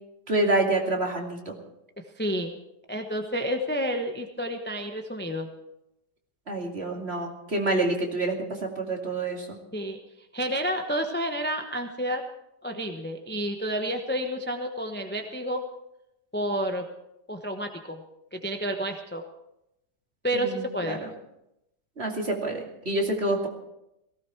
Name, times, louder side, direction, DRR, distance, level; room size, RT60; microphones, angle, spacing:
voice 1, 0.3-1.5 6.5-9.6 20.3-21.1 22.0-23.5, right 2 dB, 35° right, 1 dB, 2.6 m, -27 dB
voice 2, 2.2-2.5 2.9-5.5 9.7-12.2 12.6-15.6 16.3-16.9 17.3-18.0 18.3-19.2 20.2-21.0, equal, 10° left, 4 dB, 0.8 m, -30 dB
18.0 x 16.5 x 4.7 m, 0.84 s
omnidirectional pair, 1.9 m